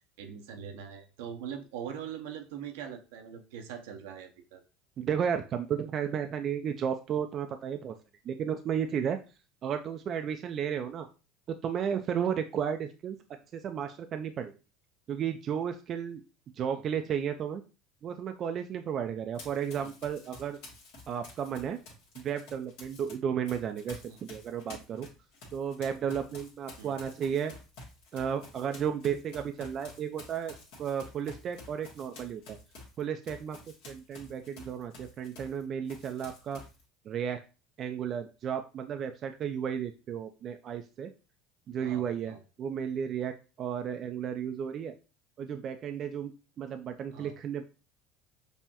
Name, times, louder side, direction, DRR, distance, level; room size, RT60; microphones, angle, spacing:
voice 1, 0.2-4.6 16.7-16.8 19.8-19.9 24.1-24.2 26.8-27.0 34.7-34.8 41.8-42.4 47.1-47.4, right 8 dB, 80° right, 4 dB, 0.7 m, -42 dB
voice 2, 5.0-8.0 8.3-9.2 9.6-11.1 11.5-13.2 13.5-14.5 15.1-16.2 16.6-17.6 18.0-20.6 21.1-21.8 22.2-25.1 25.5-27.5 28.1-30.5 30.8-32.6 33.0-33.6 33.9-36.6 37.1-37.4 37.8-41.1 41.7-45.0 45.4-47.6, right 8 dB, 45° right, 6 dB, 0.4 m, -33 dB
Run, 19.3-23.1 23.5-35.6 35.9-36.8, left 2 dB, 70° left, 1.4 m, -50 dB
5.4 x 2.1 x 2.9 m, 0.32 s
supercardioid pair, 90°, 0 cm